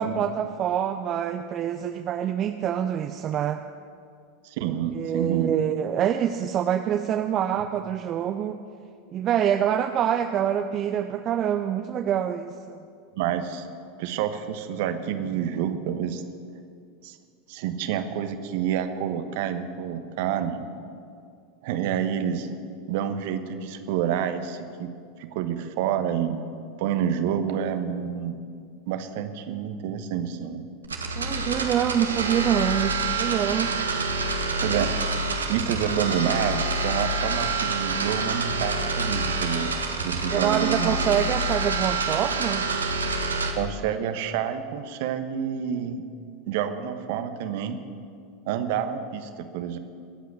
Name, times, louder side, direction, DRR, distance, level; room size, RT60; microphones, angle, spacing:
voice 1, 0.0-3.6 4.9-8.6 9.1-12.8 31.2-33.7 40.3-42.7, right 9 dB, 35° right, 8 dB, 0.6 m, -26 dB
voice 2, 4.4-5.5 13.1-13.7 14.0-16.2 17.0-17.2 17.5-20.7 21.6-22.5 22.9-24.9 25.2-26.5 26.8-28.4 28.9-30.6 34.6-34.9 35.5-39.7 40.0-41.0 43.6-46.0 46.4-47.8 48.5-49.8, right 9 dB, 55° right, 9 dB, 1.2 m, -28 dB
sound 1, 30.8-43.5, right 3 dB, 80° right, 1.4 m, -27 dB
22.0 x 8.3 x 6.3 m, 2.3 s
figure-of-eight pair, 85°, 0 cm